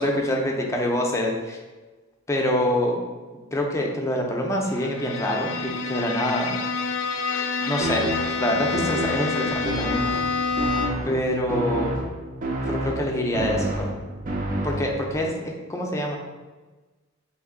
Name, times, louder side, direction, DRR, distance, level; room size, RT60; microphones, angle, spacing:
voice 1, 0.0-1.6 2.3-3.0 3.5-6.6 7.6-8.1 8.4-10.0 11.1-12.0 12.7-13.9 14.6-16.2, left 1 dB, 15° left, 0 dB, 0.4 m, -25 dB
Bowed string instrument, 4.7-11.2, left 4 dB, 75° left, 0.4 m, -28 dB
sound 1, 7.8-15.2, right 1 dB, 40° right, 0.5 m, -30 dB
3.2 x 2.6 x 3.7 m, 1.2 s
head